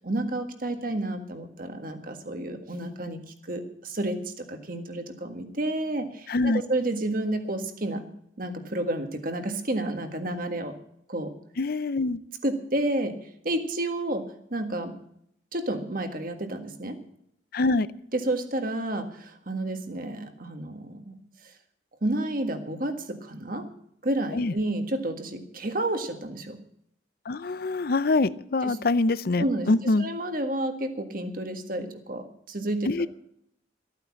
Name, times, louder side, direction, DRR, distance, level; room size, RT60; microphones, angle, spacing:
voice 1, 0.0-3.2 3.5-8.1 8.4-10.7 11.1-11.3 12.4-13.2 13.4-15.0 15.5-17.0 18.1-21.2 22.0-23.7 24.0-26.6 28.6-28.8 29.4-32.9, right 1 dB, 45° right, 6 dB, 1.7 m, -30 dB
voice 2, 6.3-6.6 11.6-12.2 17.5-17.9 24.3-24.5 27.3-30.1 32.9-33.1, left 2 dB, 50° left, 17 dB, 0.5 m, -24 dB
14.5 x 9.2 x 7.3 m, 0.72 s
head